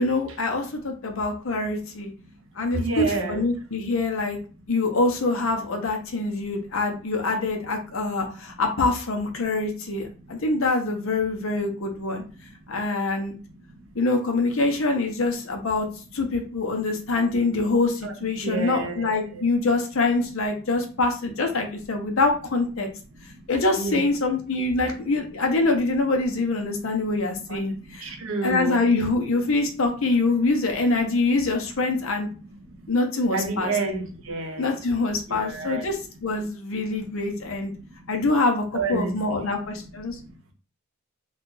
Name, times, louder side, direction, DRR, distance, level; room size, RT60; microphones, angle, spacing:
voice 1, 0.0-2.1 2.6-4.4 4.7-12.2 12.7-13.4 14.0-15.9 16.1-22.9 23.5-28.1 28.4-32.3 32.9-33.7 34.6-37.7 38.1-38.6 38.9-40.2, left 3 dB, 65° left, 0.7 m, -25 dB
voice 2, 2.7-3.4 8.4-8.6 9.4-9.5 10.2-10.4 12.2-12.8 13.7-14.0 15.8-15.9 16.7-17.0 17.4-17.5 18.0-19.5 20.9-21.0 21.7-21.8 22.1-22.2 22.8-23.4 23.8-24.0 24.9-25.0 26.7-27.0 27.5-28.8 32.4-32.9 33.3-34.7 35.2-35.9 36.8-37.0 37.3-38.1 38.7-39.7 40.0-40.5, right 3 dB, 65° right, 0.7 m, -32 dB
2.8 x 2.3 x 3.8 m
head